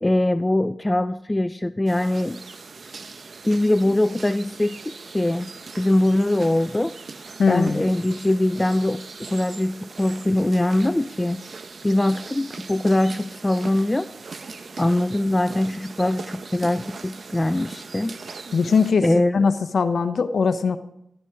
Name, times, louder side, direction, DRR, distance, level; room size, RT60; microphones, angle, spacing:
voice 1, 0.0-2.4 3.4-6.9 7.5-9.0 9.3-11.4 11.8-14.1 14.8-18.1 19.0-19.4, left 1 dB, 15° left, 13 dB, 0.4 m, -22 dB
sound 1, 1.9-18.9, right 4 dB, 55° right, 0.9 m, -40 dB
voice 2, 7.4-7.8 18.5-19.1 19.3-20.8, left 5 dB, 65° left, 11 dB, 0.8 m, -20 dB
13.5 x 12.5 x 4.8 m, 0.79 s
cardioid pair, 70°, 0 cm